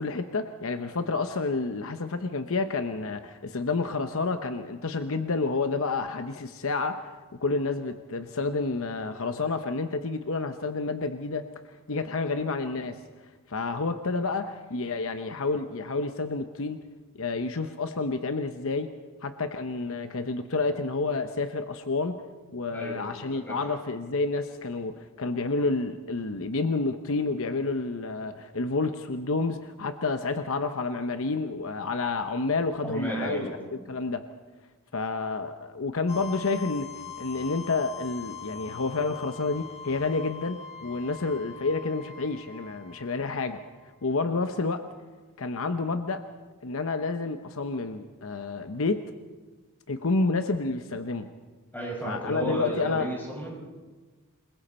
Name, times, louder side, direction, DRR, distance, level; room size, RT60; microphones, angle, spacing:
voice 1, 0.0-7.0 7.4-13.0 13.5-16.8 17.1-18.9 19.2-22.2 22.5-33.4 33.9-34.2 34.9-36.9 37.2-43.6 44.0-44.8 45.4-46.2 46.6-49.1 49.9-51.3 52.0-53.1, left 3 dB, 65° left, 8 dB, 0.9 m, -29 dB
voice 2, 22.7-23.6 32.8-33.6 51.7-53.6, right 1 dB, 10° left, -3 dB, 6.0 m, -34 dB
sound 1, 36.1-43.9, left 8 dB, 30° left, 1.4 m, -43 dB
28.0 x 21.5 x 4.4 m, 1.3 s
head